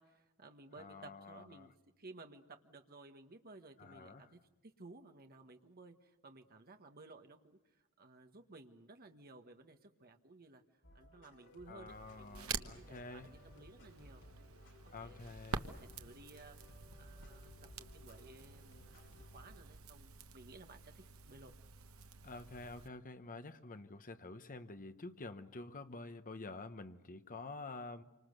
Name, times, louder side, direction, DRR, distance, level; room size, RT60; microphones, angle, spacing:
voice 1, 0.0-7.6 8.0-10.6 10.9-14.6 14.8-15.2 15.5-16.6 17.0-21.5, right 3 dB, 45° right, 5 dB, 1.5 m, -57 dB
voice 2, 0.8-1.7 3.8-4.3 11.7-13.3 14.9-15.7 22.2-28.0, left 3 dB, 40° left, 9 dB, 1.1 m, -49 dB
sound 1, 10.8-19.6, left 1 dB, 60° left, 5.8 m, -60 dB
Crackle, 11.9-22.9, right 5 dB, 70° right, 1.2 m, -48 dB
28.0 x 25.5 x 6.7 m, 1.1 s
head